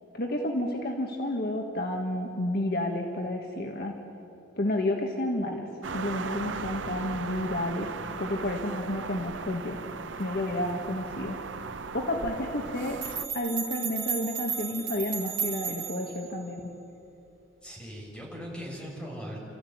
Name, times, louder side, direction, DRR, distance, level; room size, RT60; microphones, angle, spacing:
voice 1, 0.1-4.0 4.6-5.7 5.9-7.9 8.2-9.8 10.2-11.4 11.9-13.0 13.3-16.6, left 1 dB, 55° left, 2 dB, 1.8 m, -30 dB
sound 1, 5.8-13.3, right 4 dB, 70° right, 0.8 m, -37 dB
sound 2, 13.0-16.2, right 7 dB, 50° right, 3.4 m, -33 dB
voice 2, 17.6-19.4, equal, 5° left, -4 dB, 6.8 m, -39 dB
30.0 x 15.0 x 9.5 m, 2.8 s
head